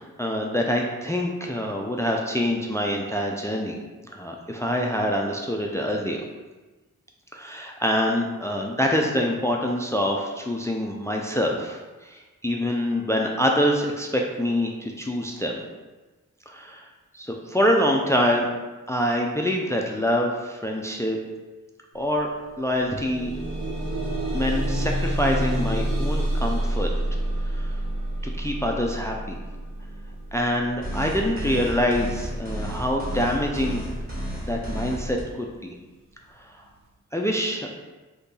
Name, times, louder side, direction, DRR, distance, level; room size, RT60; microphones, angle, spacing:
voice 1, 0.0-3.8 4.1-6.2 7.3-15.6 16.5-16.8 17.1-18.5 18.9-21.2 21.9-22.3 22.6-23.3 24.3-26.9 27.5-27.7 28.4-29.4 30.3-33.8 34.4-35.5 37.1-37.7, equal, 10° left, 1 dB, 0.4 m, -25 dB
sound 1, 22.0-22.1 22.5-33.5 34.3-34.4 34.9-35.0, right 1 dB, 75° right, 0.9 m, -29 dB
sound 2, 30.8-35.2, equal, 25° right, 1.3 m, -31 dB
2.8 x 2.6 x 3.7 m, 1.2 s
cardioid pair, 50°, 33 cm